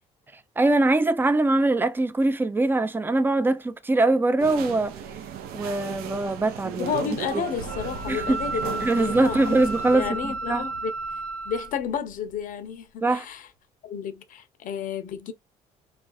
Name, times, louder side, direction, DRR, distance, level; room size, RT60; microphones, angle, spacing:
voice 1, 0.6-5.0 5.5-7.4 8.1-8.4 8.8-10.7 13.0-13.3, right 2 dB, 15° right, 0.4 m, -23 dB
sound 1, 4.4-10.0, right 9 dB, 70° right, 0.5 m, -36 dB
voice 2, 6.8-9.6 9.9-10.9 11.5-13.4 13.8-15.3, left 7 dB, 55° left, 0.6 m, -31 dB
Explosion, 7.6-12.7, equal, 90° right, 1.3 m, -43 dB
Wind instrument woodwind instrument, 7.7-11.7, right 3 dB, 10° left, 0.8 m, -33 dB
2.3 x 2.2 x 2.5 m
hypercardioid pair, 60°, 16 cm